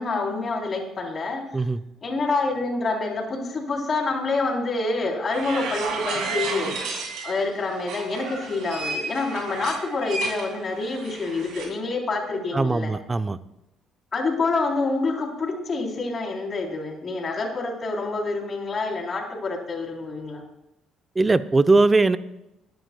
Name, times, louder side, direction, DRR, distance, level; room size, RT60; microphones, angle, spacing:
voice 1, 0.0-1.4 2.0-6.7 7.2-12.9 14.1-20.4, left 3 dB, 45° left, 0 dB, 3.6 m, -27 dB
sound 1, 5.3-7.4 7.8-11.7, right 3 dB, 70° right, 2.6 m, -32 dB
voice 2, 12.5-13.4 21.2-22.2, right 3 dB, 25° right, 14 dB, 0.6 m, -20 dB
21.5 x 10.0 x 2.3 m, 0.92 s
hypercardioid pair, 55°, 0 cm